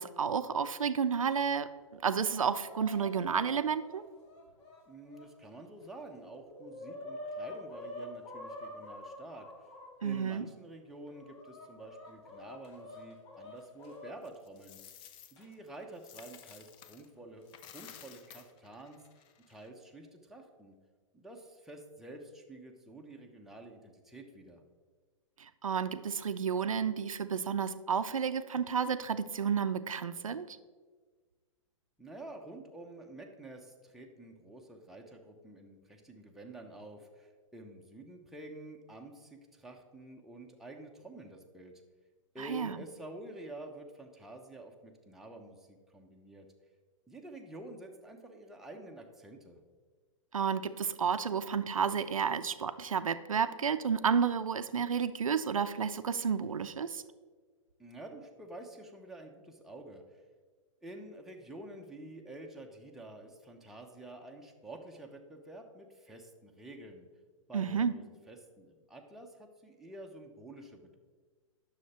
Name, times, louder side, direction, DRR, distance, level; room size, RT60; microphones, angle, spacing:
voice 1, 0.0-4.0 10.0-10.5 25.4-30.6 42.4-42.8 50.3-57.0 67.5-67.9, right 6 dB, 85° right, 12 dB, 0.5 m, -31 dB
Chicken rooster, 1.8-5.3 5.8-5.9 6.2-10.2 10.8-14.1 15.4-15.5 16.5-16.6 17.5-17.9, left 1 dB, 55° left, 2.3 m, -47 dB
voice 2, 4.9-9.7 10.0-14.8 15.3-19.0 19.5-20.7 21.1-24.6 32.0-41.8 42.3-46.5 47.1-49.6 57.8-60.0 60.8-67.0 67.5-71.0, right 2 dB, ahead, 0 dB, 1.0 m, -49 dB
Coin (dropping), 14.2-17.1 17.4-19.7, left 9 dB, 30° left, 0.6 m, -54 dB
9.5 x 6.6 x 4.3 m, 1.4 s
hypercardioid pair, 115°, 17 cm